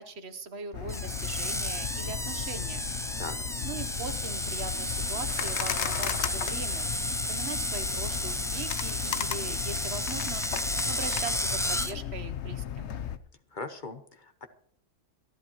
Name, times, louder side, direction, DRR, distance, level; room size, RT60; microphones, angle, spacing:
voice 1, 0.0-2.9 3.6-7.0 7.3-10.4 10.9-12.9, right 4 dB, 60° right, 10 dB, 1.2 m, -40 dB
sound 1, 0.7-13.2, left 10 dB, 65° left, 1.0 m, -35 dB
Screech, 0.9-11.9, left 1 dB, 5° left, 0.3 m, -32 dB
voice 2, 13.5-14.5, left 3 dB, 45° left, 8 dB, 1.0 m, -39 dB
27.0 x 11.5 x 3.0 m, 0.63 s
omnidirectional pair, 1.3 m